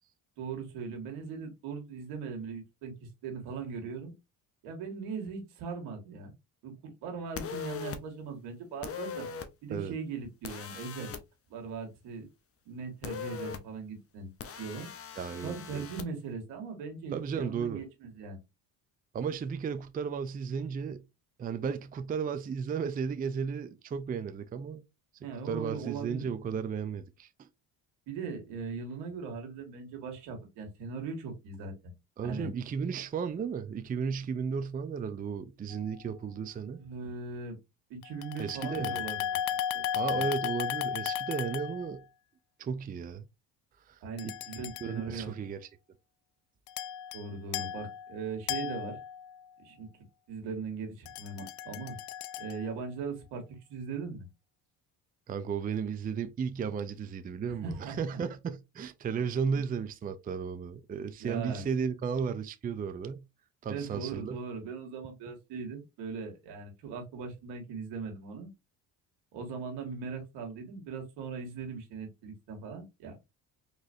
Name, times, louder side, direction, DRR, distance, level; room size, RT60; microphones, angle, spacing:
voice 1, 0.4-4.1 4.6-6.3 6.6-9.3 9.6-11.2 11.5-12.3 12.7-14.3 14.6-14.9 15.4-18.4 25.2-26.3 28.1-31.7 32.2-32.5 36.8-37.6 37.9-39.2 39.7-39.8 40.1-40.2 44.0-45.3 47.1-49.0 49.6-49.9 50.3-52.0 52.4-54.3 57.5-58.2 61.2-61.7 63.7-68.5 69.3-73.2, right 5 dB, 80° right, 1.8 m, -39 dB
sound 1, 7.3-8.0 8.8-9.5 10.4-11.2 13.0-13.6 14.4-16.0, left 7 dB, 35° left, 0.8 m, -40 dB
voice 2, 15.2-15.8 17.1-17.8 19.1-21.0 21.4-24.8 25.4-27.5 32.2-36.8 38.4-39.0 40.0-42.0 42.6-43.3 43.9-44.0 44.2-44.3 44.8-45.6 55.3-63.2 63.6-64.4, right 6 dB, 20° right, 0.4 m, -34 dB
sound 2, 35.7-35.9 38.0-42.0 44.2-45.0 46.7-47.3 47.5-49.5 51.1-52.8, left 10 dB, 85° left, 0.5 m, -35 dB
4.0 x 3.1 x 2.6 m
supercardioid pair, 80°, 40 cm